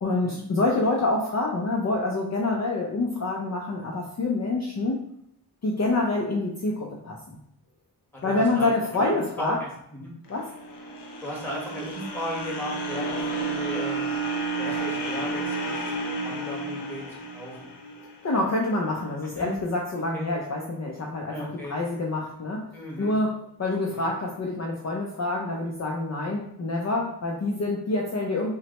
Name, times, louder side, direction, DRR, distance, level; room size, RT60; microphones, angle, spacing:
voice 1, 0.0-5.0 5.6-7.2 8.2-9.6 10.3-10.5 18.2-21.4 21.7-22.7 23.0-28.5, left 2 dB, 40° left, -1 dB, 0.5 m, -26 dB
voice 2, 8.2-10.1 11.2-14.2 14.6-15.9 16.2-17.0 17.3-17.6 19.2-19.5 19.9-20.3 21.3-21.8 22.7-23.2 23.9-24.0, equal, 5° left, -4 dB, 1.3 m, -36 dB
sound 1, 10.3-18.5, right 2 dB, 85° left, 0.8 m, -31 dB
5.7 x 2.1 x 3.0 m, 0.74 s
wide cardioid pair, 100°, 40 cm